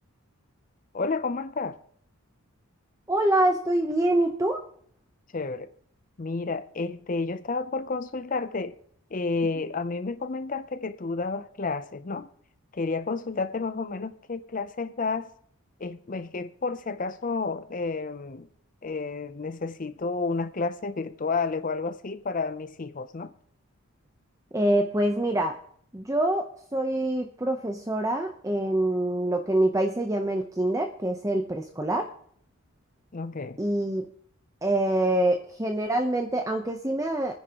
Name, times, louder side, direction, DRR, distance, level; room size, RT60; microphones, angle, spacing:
voice 1, 0.9-1.8 5.3-5.7 6.2-8.7 9.1-12.3 12.7-15.3 15.8-18.5 18.8-23.3 33.1-33.6, left 4 dB, 35° left, 0.5 m, -31 dB
voice 2, 3.1-4.6 24.5-25.6 25.9-32.1 33.6-34.1 34.6-37.3, right 1 dB, 15° right, 0.7 m, -25 dB
27.5 x 10.0 x 3.0 m
head